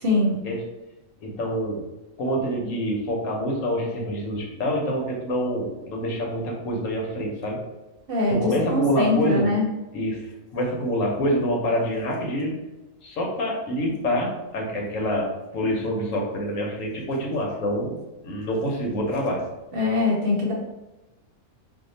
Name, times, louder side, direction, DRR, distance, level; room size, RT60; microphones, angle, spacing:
voice 1, 0.0-0.4 2.6-2.7 8.1-9.6 19.7-20.5, left 2 dB, 55° right, -3 dB, 0.9 m, -22 dB
voice 2, 1.2-1.8 2.2-7.6 8.3-9.5 9.9-12.6 13.0-19.4, equal, 80° left, -1 dB, 1.2 m, -26 dB
2.8 x 2.1 x 3.9 m, 1.0 s
omnidirectional pair, 1.3 m